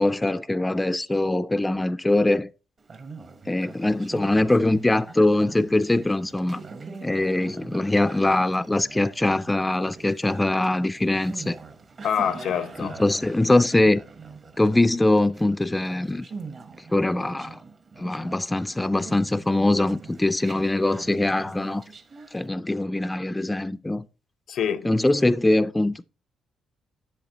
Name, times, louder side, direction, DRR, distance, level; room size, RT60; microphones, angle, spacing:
voice 1, 0.0-2.5 3.5-6.6 7.0-11.6 12.8-14.0 14.6-16.3 16.9-17.6 18.0-21.8 22.3-24.1 24.8-26.0, left 2 dB, 10° left, 0.3 m, -22 dB
Conversation, 2.8-22.5, right 4 dB, 45° right, 1.0 m, -43 dB
voice 2, 12.0-13.0 24.5-24.9, left 8 dB, 70° left, 0.6 m, -26 dB
8.2 x 6.3 x 2.9 m
cardioid pair, 90°, 0 cm